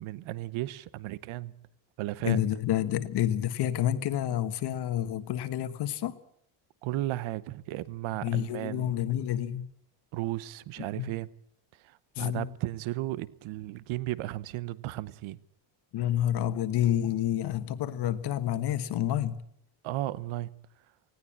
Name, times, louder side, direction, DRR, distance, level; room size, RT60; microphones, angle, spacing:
voice 1, 0.0-1.5 2.0-2.4 6.8-8.9 10.1-11.3 11.8-15.4 19.8-20.5, right 16 dB, 75° right, 1.0 m, -34 dB
voice 2, 2.2-6.2 8.2-9.7 10.8-11.2 12.1-12.5 15.9-19.4, left 11 dB, 55° left, 1.4 m, -29 dB
19.5 x 17.5 x 8.7 m
cardioid pair, 170°, 48 cm